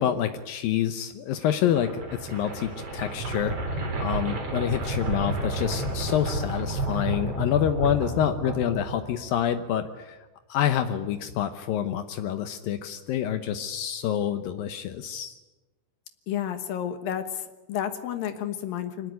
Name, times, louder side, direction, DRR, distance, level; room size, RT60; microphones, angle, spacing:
voice 1, 0.0-10.2 10.5-15.4, left 10 dB, 85° left, 9 dB, 2.0 m, -27 dB
sound 1, 1.4-9.4, right 1 dB, 35° right, 4.2 m, -31 dB
voice 2, 16.3-19.1, left 10 dB, 65° left, 9 dB, 2.5 m, -31 dB
25.0 x 19.5 x 9.4 m, 1.1 s
omnidirectional pair, 5.4 m